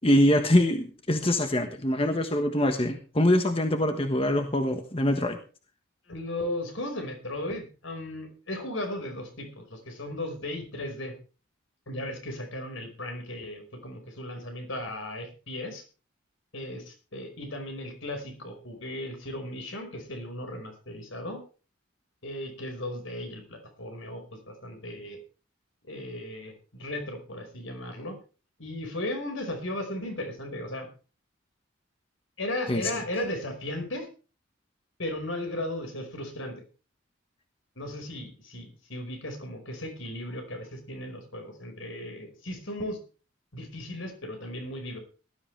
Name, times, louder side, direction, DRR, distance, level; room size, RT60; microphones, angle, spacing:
voice 1, 0.0-5.4 32.7-32.9, left 1 dB, 25° left, 6 dB, 1.3 m, -24 dB
voice 2, 6.1-11.1 11.9-15.8 16.5-21.4 22.2-25.2 25.9-26.5 26.8-28.2 28.6-30.9 32.4-34.1 35.0-36.6 37.8-43.0 43.5-45.0, left 1 dB, 70° left, 5 dB, 5.0 m, -36 dB
18.5 x 13.0 x 3.3 m, 0.36 s
head